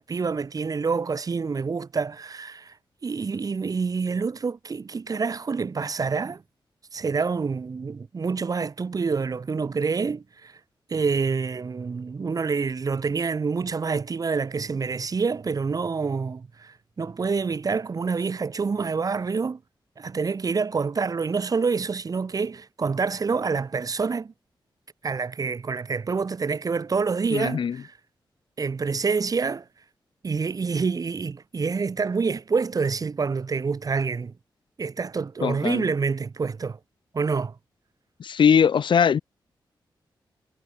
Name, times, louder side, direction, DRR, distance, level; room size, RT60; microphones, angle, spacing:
voice 1, 0.0-2.7 3.0-6.4 6.9-10.5 10.9-19.6 20.0-24.3 25.0-27.9 28.6-29.7 30.2-34.3 34.8-36.8 37.1-37.6, right 5 dB, 45° right, 2.2 m, -27 dB
voice 2, 27.3-27.8 35.4-35.9 38.2-39.2, left 7 dB, 70° left, 1.1 m, -20 dB
wide cardioid pair, 120°, 9 cm